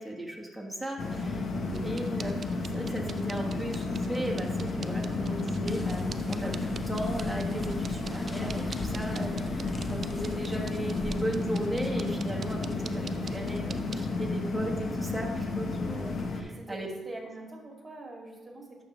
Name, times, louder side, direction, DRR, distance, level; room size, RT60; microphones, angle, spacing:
voice 1, 0.0-16.9, right 1 dB, ahead, -2 dB, 1.5 m, -36 dB
sound 1, 1.0-16.4, left 3 dB, 50° left, 0.9 m, -32 dB
sound 2, 1.7-14.1, right 5 dB, 45° right, 0.4 m, -44 dB
sound 3, 5.7-11.2, left 1 dB, 15° left, 0.8 m, -42 dB
voice 2, 16.4-18.8, right 2 dB, 20° right, -1 dB, 2.0 m, -44 dB
10.5 x 6.0 x 3.0 m, 1.2 s
cardioid pair, 90°, 0 cm